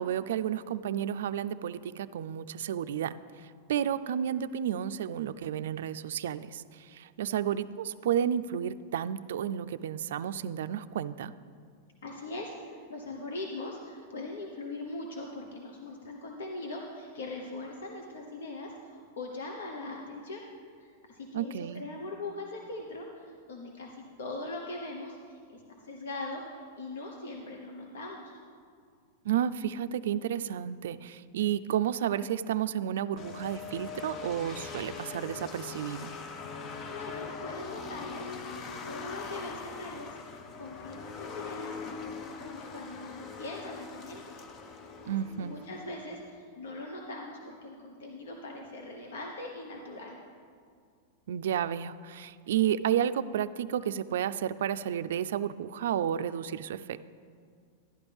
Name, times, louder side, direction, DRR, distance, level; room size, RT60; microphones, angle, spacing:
voice 1, 0.0-3.1 3.4-11.3 21.3-21.8 29.2-36.1 45.1-45.5 51.3-57.0, right 10 dB, 75° right, 12 dB, 0.3 m, -31 dB
voice 2, 12.0-20.4 20.8-28.4 36.9-41.8 42.0-44.3 45.4-50.2, left 2 dB, 90° left, 1 dB, 1.1 m, -41 dB
sound 1, 33.2-46.2, left 5 dB, 25° left, 0.5 m, -42 dB
11.5 x 11.5 x 3.5 m, 2.1 s
supercardioid pair, 160°, 0 cm